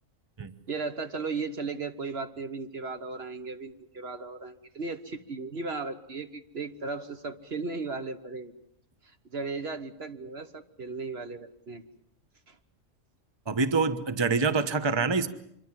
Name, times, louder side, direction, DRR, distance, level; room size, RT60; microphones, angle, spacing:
voice 1, 0.7-8.5 9.0-11.8 12.5-12.6, right 4 dB, 55° right, 9 dB, 1.4 m, -36 dB
voice 2, 13.5-15.3, right 4 dB, 20° right, 11 dB, 1.1 m, -26 dB
26.0 x 22.5 x 7.6 m, 0.74 s
omnidirectional pair, 1.3 m